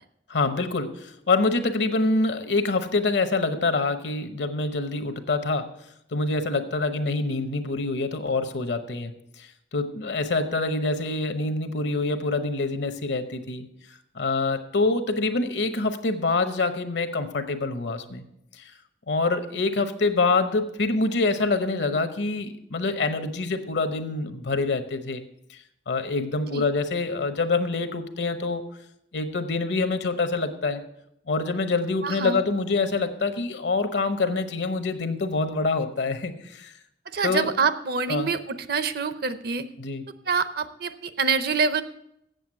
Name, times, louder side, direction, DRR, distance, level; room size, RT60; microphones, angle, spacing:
voice 1, 0.3-5.7 6.1-13.7 14.1-18.2 18.6-18.7 19.1-25.2 25.5-25.6 25.9-28.6 29.1-30.8 31.3-36.7 37.2-37.5 38.1-38.3 39.8-40.0, left 3 dB, 75° left, 9 dB, 0.9 m, -26 dB
voice 2, 32.0-32.4 37.1-39.6 40.3-41.8, right 5 dB, 60° right, 12 dB, 0.6 m, -26 dB
7.9 x 7.5 x 7.6 m, 0.79 s
head